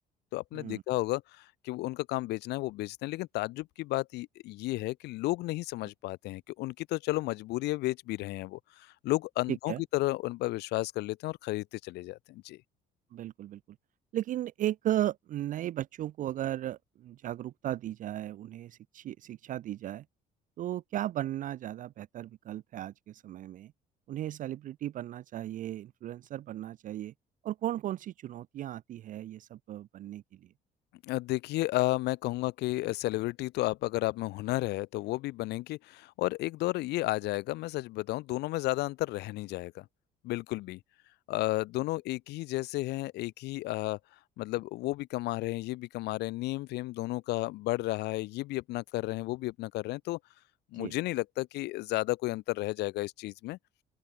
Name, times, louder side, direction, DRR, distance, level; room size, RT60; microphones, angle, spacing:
voice 1, 0.3-12.6 31.0-39.8 40.2-40.8 41.3-44.0 44.4-50.2 50.7-53.6, left 19 dB, 80° left, 0.6 m, -33 dB
voice 2, 9.5-9.8 13.1-13.6 14.1-20.0 20.6-23.7 24.1-27.1 27.4-30.4 50.7-50.9, right 13 dB, 50° right, 0.4 m, -36 dB
open air
cardioid pair, 110°, 17 cm